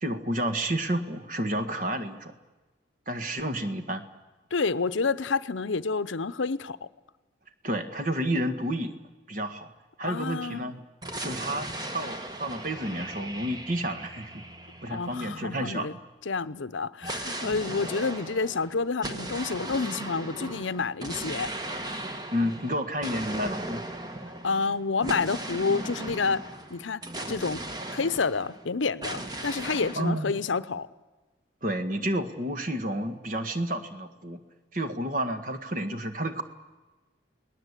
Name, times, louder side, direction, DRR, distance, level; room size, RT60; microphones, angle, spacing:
voice 1, 0.0-2.4 3.1-4.0 7.6-8.9 9.3-9.7 10.0-10.8 11.2-11.7 11.9-14.4 14.8-16.0 22.3-23.8 29.9-30.4 31.6-34.4 34.7-36.4, right 1 dB, 45° right, 8 dB, 1.7 m, -30 dB
voice 2, 4.5-6.9 10.0-10.8 14.9-15.9 16.3-21.5 24.4-26.4 26.7-27.0 27.3-27.6 27.9-30.9, left 4 dB, 90° left, 15 dB, 0.8 m, -29 dB
sound 1, 11.0-15.7 17.0-28.7 29.0-30.1, right 1 dB, 20° right, 1.3 m, -37 dB
30.0 x 19.0 x 8.3 m, 1.2 s
head